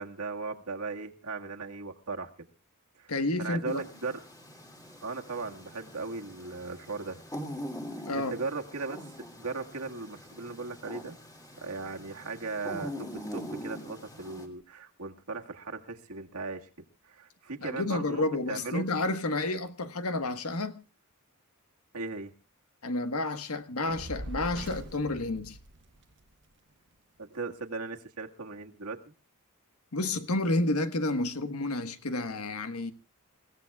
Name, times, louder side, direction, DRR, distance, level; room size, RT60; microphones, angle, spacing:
voice 1, 0.0-2.3 3.0-3.1 3.4-4.2 5.0-7.2 8.1-9.0 9.4-11.2 11.6-16.7 17.0-18.9 21.9-22.3 27.2-29.1, right 3 dB, 80° right, 1.8 m, -37 dB
voice 2, 3.1-3.8 8.0-8.3 17.6-20.8 22.8-25.6 29.9-32.9, left 2 dB, 75° left, 1.4 m, -30 dB
sound 1, 3.7-14.5, equal, 15° left, 3.0 m, -43 dB
Fire, 23.9-26.3, right 1 dB, 55° right, 1.2 m, -41 dB
28.5 x 16.0 x 2.4 m
head